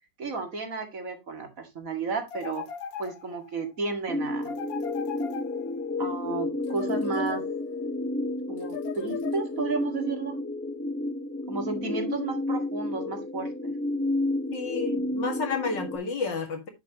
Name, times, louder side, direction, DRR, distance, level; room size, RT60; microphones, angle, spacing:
voice 1, 0.2-2.6 3.0-4.5 6.0-7.4 8.5-10.4 11.5-13.7, right 4 dB, 50° right, 2.3 m, -33 dB
sound 1, 2.3-3.6 4.4-5.9 6.6-7.8 8.6-9.8, left 8 dB, 60° left, 1.3 m, -39 dB
sound 2, 4.1-16.0, left 2 dB, 15° left, 0.5 m, -31 dB
voice 2, 14.5-16.7, left 4 dB, 80° left, 2.6 m, -31 dB
10.5 x 7.3 x 2.9 m
omnidirectional pair, 1.9 m